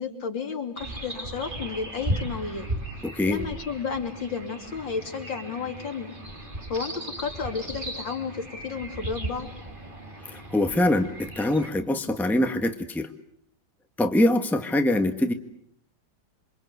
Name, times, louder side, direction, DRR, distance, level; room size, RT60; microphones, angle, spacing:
voice 1, 0.0-2.7 3.3-6.1 6.7-9.5, left 5 dB, 80° left, 4 dB, 3.6 m, -32 dB
sound 1, 0.8-11.7, right 1 dB, 25° right, 3.0 m, -36 dB
voice 2, 3.0-3.4 10.3-13.1 14.0-15.3, left 1 dB, ahead, 7 dB, 1.3 m, -24 dB
28.0 x 24.5 x 8.2 m, 0.68 s
omnidirectional pair, 2.0 m